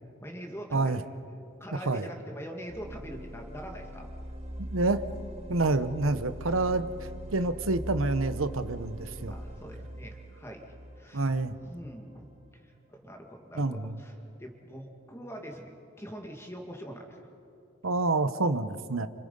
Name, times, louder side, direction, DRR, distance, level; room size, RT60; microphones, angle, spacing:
voice 1, 0.2-1.0 1.6-4.1 9.3-11.3 11.6-12.3 12.5-15.7 16.0-17.3, equal, 15° left, 2 dB, 2.0 m, -43 dB
voice 2, 0.7-1.0 1.9-2.1 4.7-5.0 5.5-6.9 7.3-9.3 11.1-11.6 13.5-13.9 17.8-19.1, right 2 dB, 90° right, 12 dB, 1.0 m, -27 dB
sound 1, 2.7-12.5, right 1 dB, 30° right, 2.0 m, -41 dB
29.5 x 27.0 x 5.4 m, 2.7 s
head